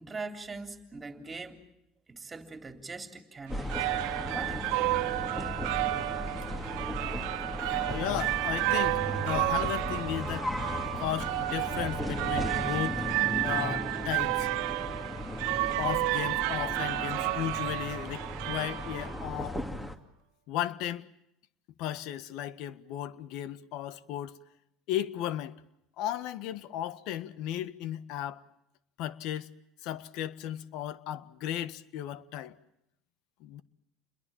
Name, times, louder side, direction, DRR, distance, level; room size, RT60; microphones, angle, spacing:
voice 1, 0.0-1.6 2.1-3.9 4.3-4.7, right 3 dB, 20° right, 3.5 m, -41 dB
sound 1, 3.5-19.9, left 1 dB, 10° left, 2.5 m, -36 dB
sound 2, 3.5-19.4, right 19 dB, 75° right, 1.5 m, -31 dB
voice 2, 7.6-10.5 11.0-13.0 13.4-14.5 15.8-19.6 20.5-21.1 21.8-24.4 24.9-25.6 26.0-28.4 29.0-29.5 29.8-32.6 33.4-33.6, left 12 dB, 65° left, 1.6 m, -35 dB
30.0 x 22.0 x 7.3 m
supercardioid pair, 120°, 0 cm